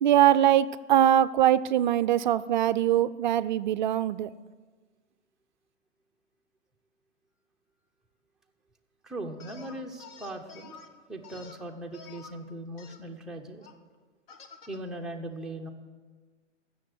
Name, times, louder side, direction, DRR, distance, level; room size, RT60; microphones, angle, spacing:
voice 1, 0.0-4.3, right 11 dB, 40° right, 15 dB, 0.4 m, -22 dB
voice 2, 9.0-10.8 11.1-13.7 14.7-15.7, right 1 dB, ahead, 0 dB, 0.6 m, -39 dB
sound 1, 9.4-10.9 11.2-12.3 12.8-13.0 13.6-13.7 14.3-14.8, left 6 dB, 50° left, 1.3 m, -49 dB
15.0 x 7.0 x 7.9 m, 1.4 s
hypercardioid pair, 135°, 36 cm